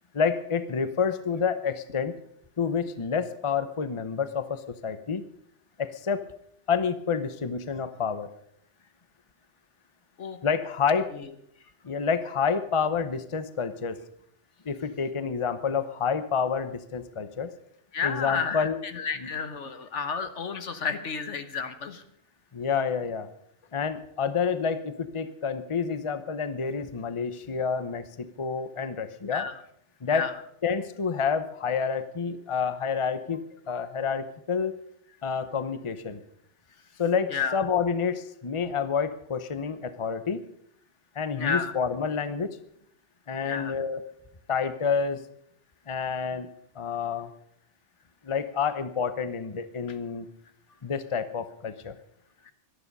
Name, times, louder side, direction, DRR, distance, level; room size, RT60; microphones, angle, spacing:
voice 1, 0.1-2.1 2.6-5.2 5.8-6.3 6.7-8.3 10.4-11.1 11.8-14.0 14.7-17.5 18.0-18.8 19.2-19.3 22.5-23.3 23.7-29.5 30.0-30.3 30.6-34.8 35.2-36.2 37.0-40.4 41.2-42.6 43.3-44.0 44.5-45.2 45.9-46.5 46.7-47.3 48.2-50.3 50.8-51.9, left 6 dB, 30° left, 12 dB, 0.9 m, -28 dB
voice 2, 17.9-18.7 18.9-22.0 29.3-29.5 30.1-30.3 37.3-37.6 41.4-41.7 43.4-43.7, left 5 dB, 75° left, 9 dB, 1.6 m, -31 dB
18.0 x 12.5 x 5.4 m, 0.67 s
omnidirectional pair, 1.2 m